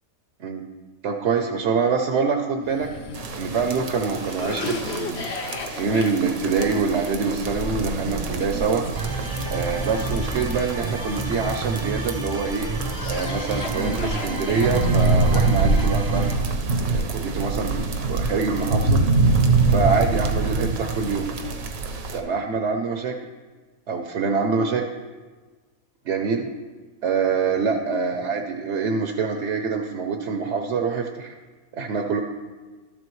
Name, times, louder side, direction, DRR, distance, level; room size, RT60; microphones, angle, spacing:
voice 1, 1.0-2.9 3.4-5.3 5.7-8.8 9.5-12.7 13.1-16.3 16.9-19.0 19.7-21.3 22.1-23.2 23.9-24.9 26.0-26.5 27.0-31.4 31.7-32.2, right 5 dB, 60° right, 4 dB, 0.9 m, -25 dB
Cough, 2.6-11.8 12.4-16.3, left 3 dB, 55° left, 1.0 m, -36 dB
sound 1, 3.1-22.2, right 3 dB, 80° right, 1.3 m, -25 dB
sound 2, 9.0-16.3, right 2 dB, 25° right, 0.6 m, -32 dB
13.0 x 7.7 x 3.1 m, 1.3 s
omnidirectional pair, 1.4 m